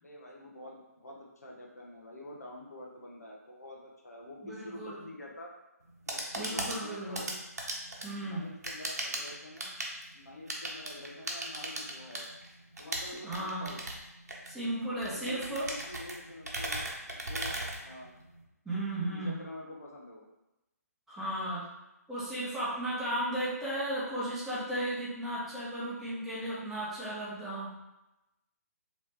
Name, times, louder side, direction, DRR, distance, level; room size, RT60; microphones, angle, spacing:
voice 1, 0.0-5.5 6.1-7.4 8.2-9.7 10.1-12.3 12.8-13.9 15.0-18.1 19.1-20.3, left 1 dB, 70° left, -1 dB, 0.8 m, -47 dB
voice 2, 4.4-5.0 6.3-7.2 8.0-8.5 13.1-13.7 14.4-15.7 18.6-19.4 21.1-21.7 22.1-27.7, right 1 dB, 5° right, -11 dB, 1.0 m, -35 dB
sound 1, 5.8-18.4, right 1 dB, 70° right, 0.8 m, -39 dB
3.0 x 3.0 x 3.4 m, 0.94 s
figure-of-eight pair, 140°, 9 cm